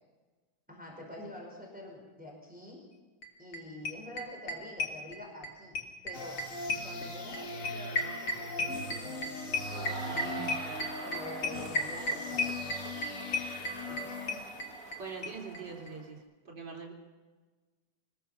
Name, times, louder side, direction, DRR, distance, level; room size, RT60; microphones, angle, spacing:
voice 1, 0.7-2.8 3.4-5.7 6.0-6.4 6.8-10.3 10.6-12.7 13.9-14.5, left 1 dB, 5° right, 0 dB, 4.9 m, -47 dB
sound 1, 3.2-3.3 3.5-3.6 3.8-5.5 5.7-15.0 15.2-15.3 15.5-15.6 15.9-16.0, left 2 dB, 80° left, 3.5 m, -33 dB
sound 2, 6.1-15.0, left 2 dB, 45° left, 2.1 m, -40 dB
Crowd, 9.5-16.1, right 3 dB, 45° right, 1.9 m, -45 dB
voice 2, 10.0-10.5 15.0-16.9, right 5 dB, 65° right, 0 dB, 4.0 m, -43 dB
24.0 x 21.0 x 5.7 m, 1.3 s
omnidirectional pair, 2.1 m